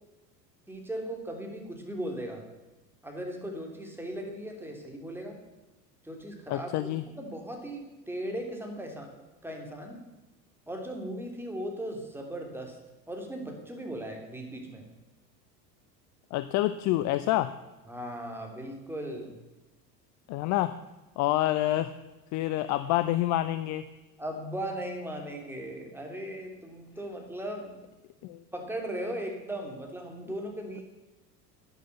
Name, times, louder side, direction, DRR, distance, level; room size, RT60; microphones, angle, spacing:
voice 1, 0.7-2.4 3.0-5.4 6.0-6.9 7.2-10.0 10.7-12.8 13.1-14.8 17.9-19.4 24.2-27.7 28.5-30.8, right 1 dB, 5° right, 2 dB, 3.2 m, -37 dB
voice 2, 6.5-7.0 16.3-17.5 20.3-20.7 21.2-21.9 22.3-23.8 28.2-28.4, left 15 dB, 35° left, 13 dB, 0.6 m, -27 dB
11.5 x 10.0 x 6.9 m, 1.1 s
figure-of-eight pair, 75°, 49 cm